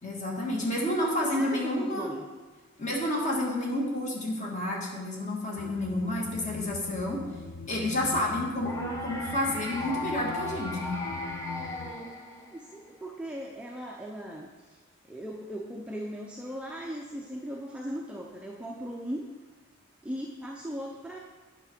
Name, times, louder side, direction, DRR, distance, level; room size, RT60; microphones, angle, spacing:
voice 1, 0.0-2.1 2.8-7.2 7.7-11.0, left 1 dB, 35° left, -2 dB, 1.6 m, -30 dB
voice 2, 1.1-2.3 12.5-14.8 15.1-19.3 20.0-21.2, equal, 5° right, -1 dB, 0.5 m, -38 dB
sound 1, 5.6-11.9, left 5 dB, 50° left, 0.4 m, -42 dB
sound 2, 8.6-12.8, left 2 dB, 15° left, 0.8 m, -37 dB
9.1 x 5.8 x 4.4 m, 1.4 s
head